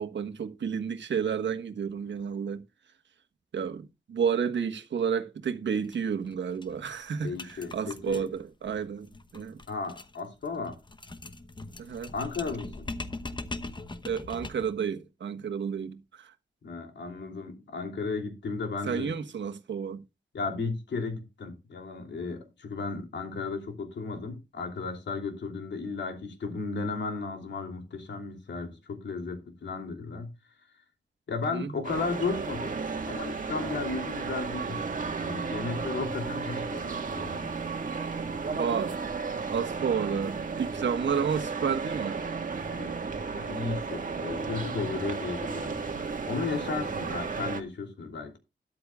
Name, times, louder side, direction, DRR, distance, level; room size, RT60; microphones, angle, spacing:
voice 1, 0.0-2.6 3.5-9.1 9.3-9.6 11.8-12.1 14.0-16.3 18.9-20.0 31.5-31.7 38.6-38.9 39.5-42.2, right 7 dB, 80° right, 1.4 m, -31 dB
sound 1, 5.8-6.0 6.3-6.4 6.6-14.8, left 2 dB, 25° left, 0.9 m, -41 dB
voice 2, 7.2-8.3 9.7-10.8 12.1-12.9 16.6-19.1 20.3-30.3 31.3-32.8 33.1-34.8 35.2-37.6 38.4-38.5 42.7-43.0 43.4-48.4, left 4 dB, 75° left, 3.1 m, -34 dB
sound 2, 31.8-47.6, right 4 dB, 45° right, 1.8 m, -34 dB
13.0 x 11.0 x 2.4 m
wide cardioid pair, 115°, 19 cm